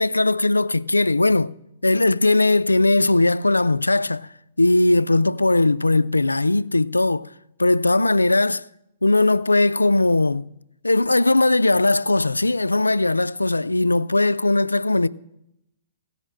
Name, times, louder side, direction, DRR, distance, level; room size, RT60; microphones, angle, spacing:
voice 1, 0.0-1.5 1.8-4.3 4.6-7.3 7.6-8.7 9.0-10.5 10.8-15.1, left 2 dB, 85° left, 0.3 m, -19 dB
16.0 x 5.6 x 7.4 m
figure-of-eight pair, 115°, 0 cm